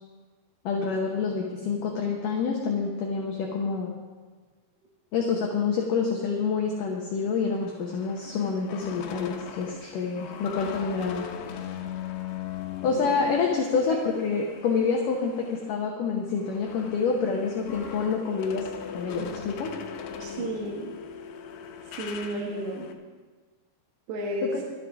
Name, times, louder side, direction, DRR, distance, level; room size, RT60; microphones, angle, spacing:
voice 1, 0.6-3.9 5.1-11.3 12.8-18.7 18.9-19.7 24.4-24.5, left 5 dB, 65° left, 0 dB, 2.2 m, -27 dB
sound 1, 7.3-15.7 16.1-22.9, left 7 dB, 80° left, 3.0 m, -40 dB
voice 2, 20.2-21.0 21.9-22.9 24.1-24.6, right 1 dB, 75° right, -2 dB, 3.6 m, -32 dB
18.0 x 13.0 x 3.6 m, 1.4 s
omnidirectional pair, 5.0 m